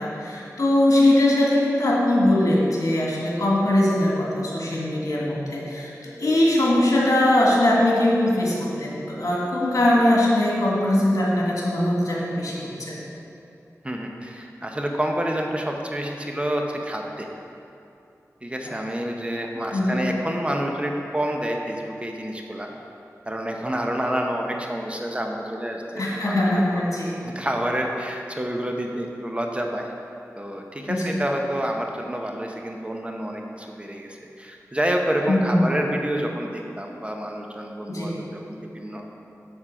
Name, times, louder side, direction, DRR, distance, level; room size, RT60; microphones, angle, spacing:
voice 1, 0.0-13.0 19.7-20.0 26.0-27.1 30.9-31.1 35.3-35.7 37.9-38.1, left 1 dB, 70° left, -4 dB, 2.0 m, -21 dB
voice 2, 13.8-17.3 18.4-22.7 23.2-26.4 26.7-26.8 27.2-29.9 30.3-39.1, right 1 dB, 20° right, 1 dB, 0.9 m, -28 dB
7.3 x 7.2 x 4.9 m, 2.7 s
wide cardioid pair, 55°, 6 cm